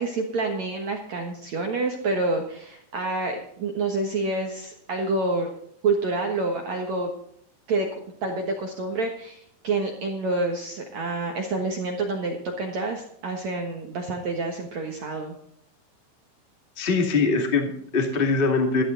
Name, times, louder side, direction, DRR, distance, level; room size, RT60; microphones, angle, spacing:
voice 1, 0.0-5.5 5.8-7.1 7.7-7.9 8.2-15.3, right 3 dB, 65° right, 2 dB, 1.7 m, -28 dB
voice 2, 16.8-18.8, left 4 dB, 30° left, 3 dB, 0.9 m, -22 dB
15.0 x 12.0 x 3.9 m, 0.68 s
omnidirectional pair, 5.4 m